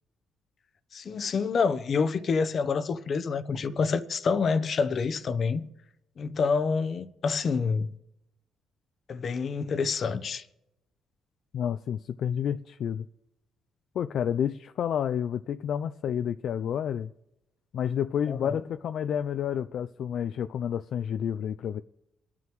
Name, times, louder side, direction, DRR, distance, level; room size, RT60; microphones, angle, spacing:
voice 1, 0.9-5.7 6.2-7.9 9.1-10.4 18.3-18.6, left 5 dB, 50° left, 0.8 m, -27 dB
voice 2, 11.5-13.1 14.0-17.1 17.7-21.8, left 9 dB, 70° left, 0.3 m, -30 dB
24.0 x 9.5 x 3.1 m
cardioid pair, 90°, 0 cm